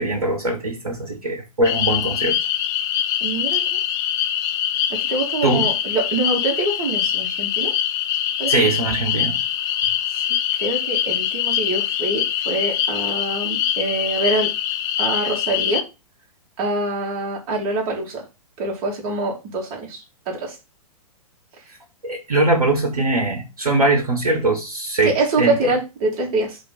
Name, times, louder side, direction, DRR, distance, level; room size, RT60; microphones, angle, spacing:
voice 1, 0.0-2.4 5.4-5.7 8.5-9.4 22.0-25.6, right 2 dB, 70° right, 4 dB, 1.5 m, -21 dB
sound 1, 1.6-15.8, left 10 dB, 20° left, 0.4 m, -23 dB
voice 2, 3.2-3.6 5.1-7.7 8.4-8.5 10.6-14.5 15.0-15.8 16.6-18.2 18.6-20.6 25.0-26.6, right 2 dB, 35° right, -1 dB, 2.5 m, -24 dB
5.0 x 3.8 x 5.6 m, 0.27 s
figure-of-eight pair, 110°, 19 cm